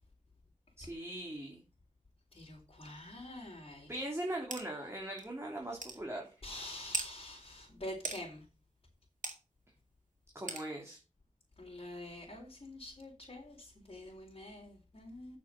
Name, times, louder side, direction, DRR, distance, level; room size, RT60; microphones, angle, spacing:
voice 1, 0.8-1.6 3.9-6.2 10.3-11.0, right 1 dB, 20° right, -1 dB, 3.1 m, -40 dB
voice 2, 2.3-3.9 6.4-8.4 11.6-15.4, left 1 dB, 45° left, -3 dB, 3.9 m, -46 dB
sound 1, 4.5-4.6 5.2-5.3 5.8-6.0 6.9-7.1 8.0-8.2 9.2-9.4 10.5-10.6, right 3 dB, 75° right, 2.3 m, -37 dB
8.4 x 6.7 x 6.4 m, 0.33 s
wide cardioid pair, 50°, 13 cm